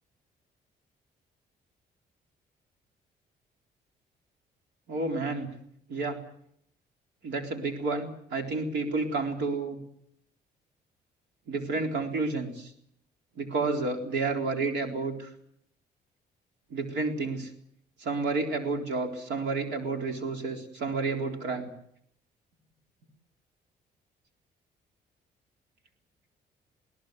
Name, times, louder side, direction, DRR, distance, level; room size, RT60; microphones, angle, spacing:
voice 1, 4.9-5.5 5.9-6.2 7.2-9.8 11.5-12.7 13.4-15.3 16.7-17.5 18.0-21.7, right 3 dB, 80° right, 4 dB, 4.0 m, -30 dB
22.0 x 18.0 x 8.2 m, 0.69 s
cardioid pair, 90°, 18 cm